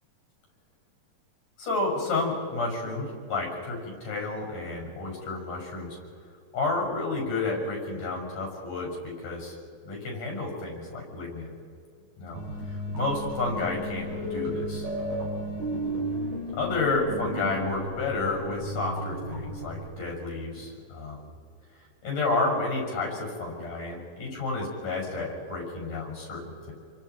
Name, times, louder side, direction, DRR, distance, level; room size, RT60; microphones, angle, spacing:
voice 1, 1.6-6.0 6.5-9.6 9.8-11.6 12.2-14.9 16.5-21.3 22.0-26.7, left 3 dB, 65° left, -1 dB, 7.8 m, -31 dB
sound 1, 12.3-19.7, equal, 80° right, 7.8 m, -34 dB
29.0 x 25.5 x 4.7 m, 2.2 s
omnidirectional pair, 4.0 m